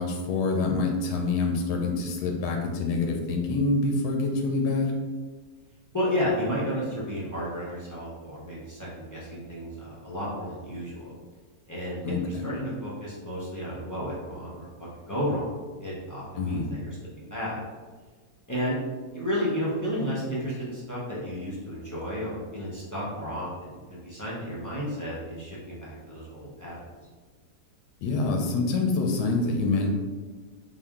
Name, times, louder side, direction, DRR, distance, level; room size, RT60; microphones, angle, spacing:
voice 1, 0.0-4.9 12.0-12.5 16.4-16.7 28.0-29.9, left 3 dB, 85° left, 2 dB, 1.2 m, -26 dB
voice 2, 5.9-11.1 11.7-15.5 15.8-17.6 18.5-18.8 19.1-26.9, equal, 25° left, -8 dB, 0.3 m, -32 dB
3.7 x 2.4 x 3.5 m, 1.4 s
omnidirectional pair, 1.7 m